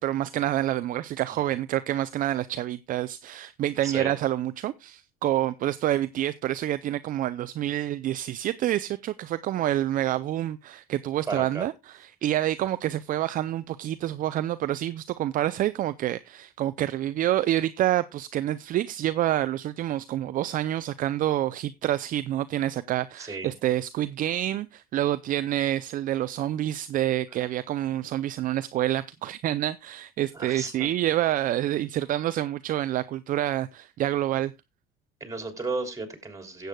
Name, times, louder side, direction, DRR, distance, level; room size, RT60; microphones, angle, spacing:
voice 1, 0.0-34.5, right 13 dB, 50° right, 0.5 m, -27 dB
voice 2, 11.3-11.7 23.2-23.5 30.3-30.9 35.2-36.7, right 3 dB, 15° right, 3.3 m, -33 dB
17.0 x 8.0 x 2.3 m
hypercardioid pair, 75°, 18 cm